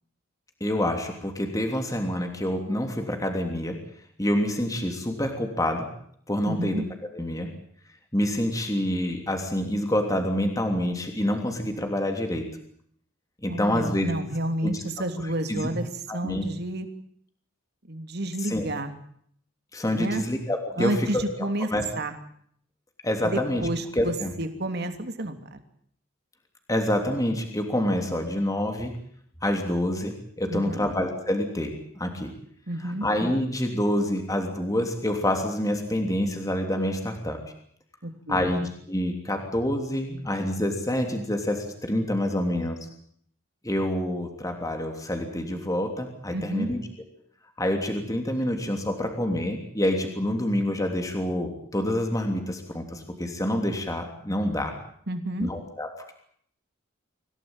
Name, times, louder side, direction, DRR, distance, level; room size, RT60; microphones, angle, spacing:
voice 1, 0.6-3.8 4.2-5.9 6.3-6.8 7.1-7.5 8.1-12.5 13.4-14.1 14.6-14.7 15.5-15.7 16.1-16.5 18.4-18.7 19.7-21.8 23.0-23.6 23.9-24.3 26.7-28.9 29.4-32.3 32.8-37.4 38.3-42.8 43.6-46.9 47.6-54.7 55.4-56.1, left 1 dB, 15° left, 4 dB, 3.1 m, -27 dB
voice 2, 6.4-6.8 13.5-16.9 17.9-18.9 19.9-20.2 20.8-21.7 22.0-22.1 23.2-25.6 30.5-30.9 32.7-33.1 38.0-38.5 46.3-46.7 55.1-55.5, right 1 dB, 50° right, 7 dB, 3.1 m, -30 dB
26.0 x 17.5 x 9.0 m, 0.65 s
head